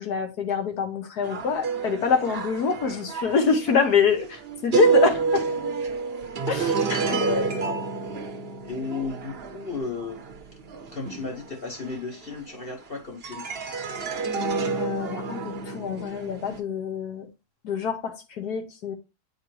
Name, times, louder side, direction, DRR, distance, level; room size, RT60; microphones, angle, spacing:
voice 1, 0.0-5.5 6.5-7.2 14.8-15.4 15.7-17.3 17.6-18.9, left 6 dB, 75° left, 1.7 m, -25 dB
sound 1, 1.2-12.8 13.2-16.6, right 4 dB, 45° right, 0.9 m, -29 dB
voice 2, 7.2-7.8 8.6-10.2 10.9-13.4, left 4 dB, 40° left, 1.1 m, -33 dB
8.8 x 4.4 x 3.1 m
omnidirectional pair, 1.7 m